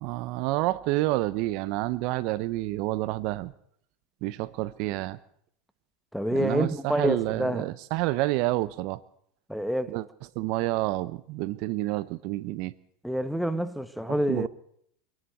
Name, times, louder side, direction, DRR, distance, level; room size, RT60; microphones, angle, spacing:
voice 1, 0.0-3.5 4.2-5.2 6.3-9.0 9.9-10.0 10.4-12.7 14.3-14.5, right 18 dB, 55° right, 0.8 m, -29 dB
voice 2, 6.1-7.7 9.5-9.9 13.0-14.5, equal, ahead, 1.1 m, -27 dB
25.0 x 11.5 x 9.2 m
supercardioid pair, 130°, 0 cm